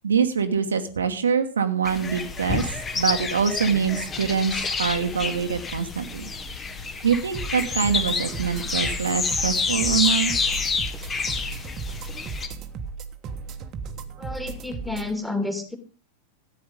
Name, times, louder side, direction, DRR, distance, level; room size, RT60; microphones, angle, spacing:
voice 1, 0.0-2.6 2.9-6.3 7.0-10.3, right 6 dB, 70° right, 7 dB, 1.3 m, -24 dB
sound 1, 1.8-12.5, left 4 dB, 20° left, 1.7 m, -28 dB
sound 2, 7.3-15.1, right 5 dB, 35° right, 1.4 m, -36 dB
voice 2, 14.2-15.8, left 2 dB, 5° left, 7 dB, 2.7 m, -30 dB
13.5 x 9.3 x 5.3 m, 0.36 s
figure-of-eight pair, 90°, 0 cm